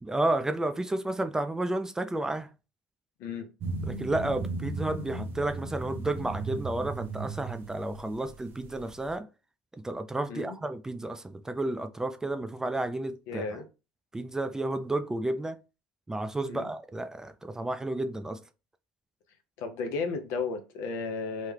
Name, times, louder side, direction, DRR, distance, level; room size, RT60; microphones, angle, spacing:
voice 1, 0.0-2.5 3.9-9.3 9.7-13.4 14.1-15.6 16.1-18.4, right 2 dB, 10° right, 0.3 m, -31 dB
sound 1, 3.6-9.1, right 3 dB, 50° right, 0.8 m, -36 dB
voice 2, 13.3-13.6 16.5-16.7 19.6-21.5, left 4 dB, 65° left, 0.7 m, -34 dB
3.0 x 2.3 x 3.3 m
supercardioid pair, 90°, 5 cm